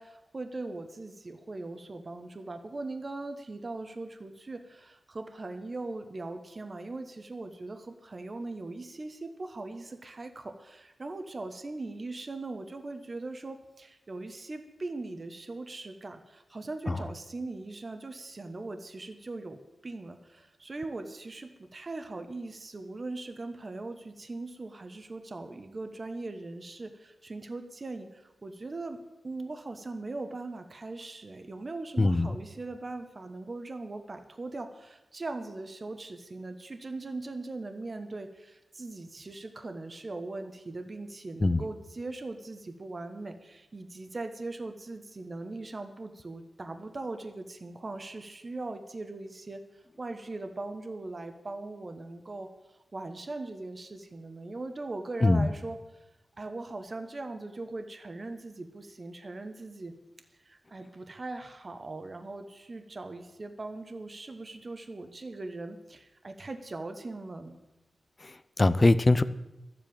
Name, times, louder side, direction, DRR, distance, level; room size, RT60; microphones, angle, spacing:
voice 1, 0.0-55.8 56.4-60.0 60.4-67.6, right 2 dB, 40° right, 7 dB, 1.1 m, -40 dB
voice 2, 32.0-32.3 41.4-41.6 55.2-55.5 68.2-69.2, left 2 dB, 30° left, 14 dB, 0.6 m, -23 dB
12.5 x 7.8 x 8.7 m, 0.96 s
wide cardioid pair, 80°, 0 cm